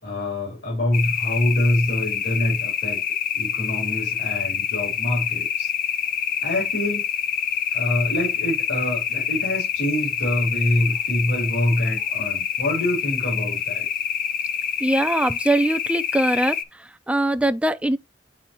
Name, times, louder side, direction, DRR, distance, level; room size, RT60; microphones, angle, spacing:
voice 1, 0.0-3.0 3.3-5.7 6.4-7.0 7.7-13.8, left 1 dB, 65° left, 3.4 m, -25 dB
sound 1, 0.9-16.6, left 8 dB, 45° left, 0.8 m, -26 dB
voice 2, 14.8-16.5 17.1-18.0, right 1 dB, 5° right, 0.4 m, -21 dB
8.9 x 4.4 x 2.8 m
head